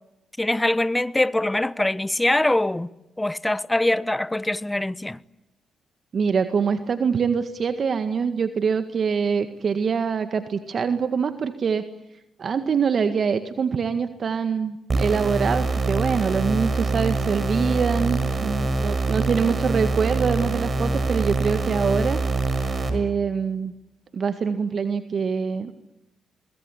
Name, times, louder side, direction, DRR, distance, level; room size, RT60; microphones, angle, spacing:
voice 1, 0.4-2.9 3.2-5.2, left 1 dB, 15° left, 1.1 m, -23 dB
voice 2, 6.1-11.9 12.4-22.2 22.9-23.7 24.1-25.7, right 6 dB, 55° right, 1.8 m, -24 dB
sound 1, 14.9-22.9, right 3 dB, 40° right, 6.0 m, -24 dB
25.5 x 21.5 x 10.0 m
supercardioid pair, 60°, 0 cm